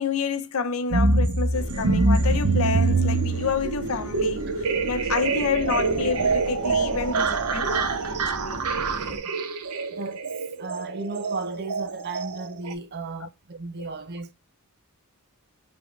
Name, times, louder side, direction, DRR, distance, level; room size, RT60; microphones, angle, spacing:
voice 1, 0.0-8.7 13.2-13.3, left 5 dB, 65° left, 0.6 m, -29 dB
sound 1, 0.9-12.7, right 3 dB, 90° right, 0.7 m, -25 dB
sound 2, 1.5-9.2, equal, 65° right, 1.2 m, -36 dB
voice 2, 9.9-10.2 10.6-14.3, right 3 dB, 45° right, 0.6 m, -35 dB
5.1 x 3.5 x 2.4 m
head